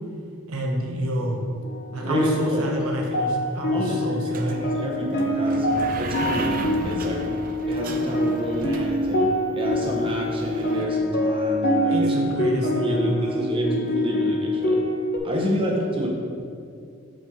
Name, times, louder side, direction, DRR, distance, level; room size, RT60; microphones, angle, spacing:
voice 1, 0.5-1.4 1.9-4.6 11.9-13.6 15.4-15.6, right 1 dB, 85° right, 0 dB, 0.9 m, -28 dB
sound 1, 1.6-15.2, left 1 dB, 45° left, 0.8 m, -25 dB
voice 2, 2.0-2.7 3.7-5.7 6.0-6.6 6.8-7.2 7.7-9.3 9.5-12.1 12.8-14.8 15.2-16.1, right 1 dB, 25° right, -2 dB, 0.9 m, -29 dB
sound 2, 2.9-3.0 3.2-3.6 4.3-10.9, right 3 dB, 40° right, 0.4 m, -35 dB
6.3 x 4.4 x 4.6 m, 2.4 s
head